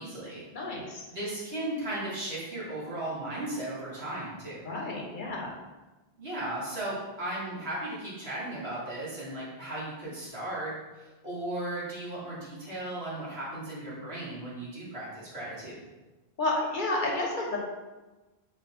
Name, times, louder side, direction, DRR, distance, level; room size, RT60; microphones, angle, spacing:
voice 1, 0.0-0.4 1.1-4.6 6.2-15.8, right 1 dB, 70° right, -8 dB, 1.7 m, -36 dB
voice 2, 0.5-1.1 4.6-5.5 16.4-17.6, left 2 dB, 55° left, -1 dB, 0.8 m, -31 dB
4.0 x 3.8 x 2.9 m, 1.2 s
omnidirectional pair, 1.1 m